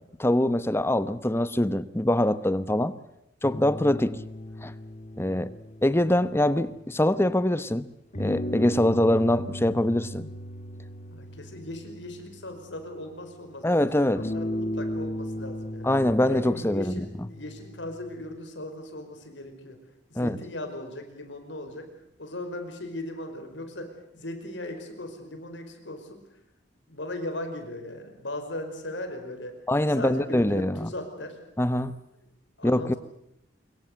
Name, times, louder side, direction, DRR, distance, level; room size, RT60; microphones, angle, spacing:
voice 1, 0.2-3.0 3.4-4.2 4.6-4.7 5.2-5.5 5.8-7.9 8.2-10.3 13.6-14.2 15.8-16.9 20.2-20.4 29.7-30.9 31.6-32.0 32.6-32.9, left 1 dB, 15° left, 0.9 m, -24 dB
sound 1, 3.4-7.3 8.1-13.2 14.2-18.4, left 1 dB, 40° left, 2.7 m, -37 dB
voice 2, 11.1-15.9 16.2-19.8 20.1-21.9 22.2-26.4 26.9-29.6 29.8-31.4 32.6-33.0, left 1 dB, 80° left, 5.2 m, -38 dB
25.0 x 22.5 x 8.1 m
head